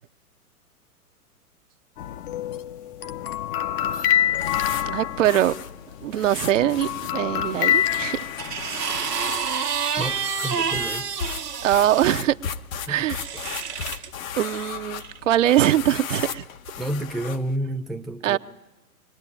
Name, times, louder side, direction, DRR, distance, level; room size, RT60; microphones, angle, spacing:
sound 1, 2.0-6.0 6.3-8.8, left 11 dB, 35° left, 0.8 m, -26 dB
sound 2, 3.8-17.6, left 7 dB, 60° left, 1.2 m, -37 dB
voice 1, 4.9-5.6 6.0-8.5 11.6-12.4 12.9-13.2 14.4-16.4 18.2-18.4, right 12 dB, 55° right, 8 dB, 0.8 m, -22 dB
sound 3, 7.9-12.2 13.1-14.1 15.0-15.2, right 6 dB, 90° right, 1.3 m, -29 dB
voice 2, 10.0-11.1 12.9-13.1 16.8-18.4, right 1 dB, ahead, 3 dB, 0.8 m, -30 dB
25.0 x 18.5 x 10.0 m, 1.0 s
figure-of-eight pair, 115°, 46 cm